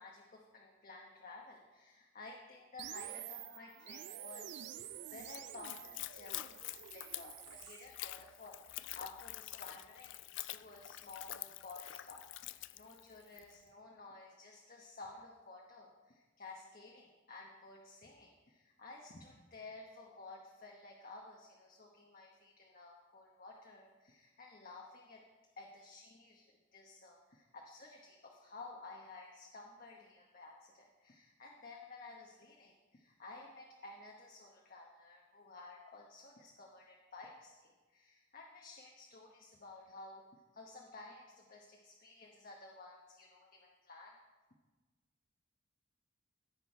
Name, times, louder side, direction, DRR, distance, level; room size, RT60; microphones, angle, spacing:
voice 1, 0.0-25.2 25.6-40.3 40.5-44.2, left 3 dB, 45° left, -1 dB, 1.0 m, -54 dB
sound 1, 2.8-7.9, right 11 dB, 60° right, 0.4 m, -49 dB
Splash splatter / Trickle dribble, 5.2-13.5, left 15 dB, 60° left, 0.3 m, -47 dB
16.5 x 6.1 x 4.5 m, 1.3 s
head